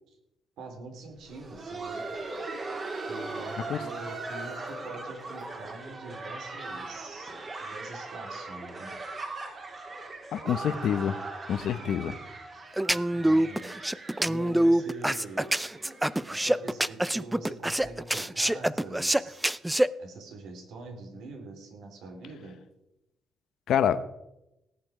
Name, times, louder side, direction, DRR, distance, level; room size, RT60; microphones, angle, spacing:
voice 1, 0.6-2.0 3.1-7.3 7.6-8.9 11.8-12.0 12.9-15.6 16.2-19.4 20.0-22.6, right 3 dB, 80° right, 4 dB, 3.4 m, -44 dB
Laughter, 1.2-16.9 17.1-17.2 17.8-17.9 18.5-18.7 19.7-19.8, right 3 dB, 40° right, 2.9 m, -40 dB
voice 2, 10.3-11.1 11.5-12.1 23.7-24.1, left 9 dB, 70° left, 13 dB, 0.9 m, -26 dB
sound 1, 12.8-19.9, right 1 dB, 10° right, 0.4 m, -25 dB
18.0 x 7.7 x 5.0 m, 0.90 s
cardioid pair, 90°, 0 cm